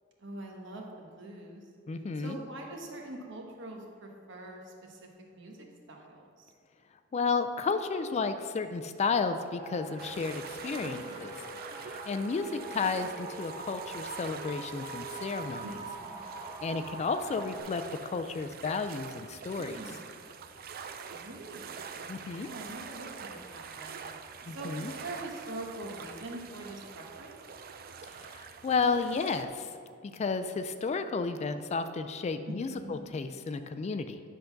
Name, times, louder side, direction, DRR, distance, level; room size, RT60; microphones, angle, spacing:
voice 1, 0.2-1.6 2.2-6.5 10.8-11.2 15.6-16.2 19.6-20.0 21.1-22.0 22.3-24.1 24.5-27.4 32.5-33.0, right 2 dB, 65° right, 1 dB, 1.2 m, -44 dB
voice 2, 1.9-2.4 7.1-11.3 11.7-15.8 16.6-19.8 22.1-22.5 24.5-24.9 28.3-29.7 30.0-34.2, left 4 dB, 35° left, 10 dB, 0.3 m, -32 dB
sound 1, 9.5-17.6, right 3 dB, 25° right, 1.1 m, -43 dB
sound 2, 10.0-29.4, right 6 dB, 50° right, 0.4 m, -45 dB
10.0 x 3.8 x 5.7 m, 2.3 s
head